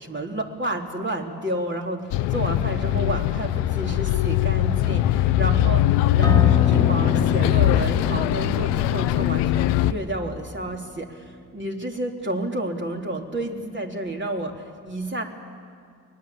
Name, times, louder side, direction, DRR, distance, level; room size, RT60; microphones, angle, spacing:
voice 1, 0.0-15.2, right 1 dB, 25° right, 2 dB, 3.7 m, -30 dB
Bus, 2.1-9.9, left 13 dB, 70° left, 0.9 m, -21 dB
Acoustic guitar, 6.2-11.4, left 2 dB, 10° left, 2.4 m, -32 dB
23.5 x 20.0 x 8.6 m, 2.2 s
hypercardioid pair, 40°, 44 cm